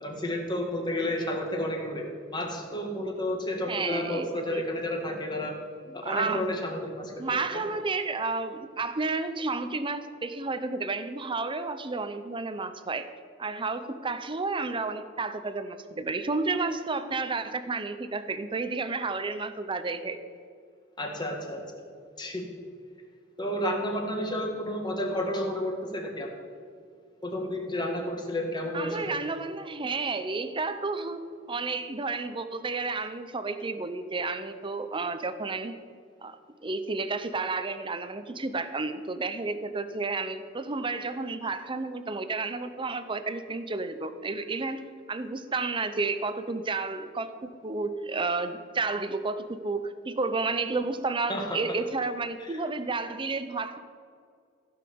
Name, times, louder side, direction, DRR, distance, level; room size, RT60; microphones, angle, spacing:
voice 1, 0.0-2.0 2.3-5.5 5.9-7.6 21.0-21.6 22.2-22.4 23.4-26.3 27.2-29.2 51.3-51.4, left 1 dB, 20° left, 1 dB, 1.8 m, -31 dB
voice 2, 3.7-4.6 5.9-6.5 7.2-13.1 13.4-20.2 28.7-31.2 31.5-35.8 36.2-53.8, right 3 dB, 25° right, 10 dB, 0.6 m, -31 dB
15.0 x 5.6 x 6.9 m, 2.2 s
head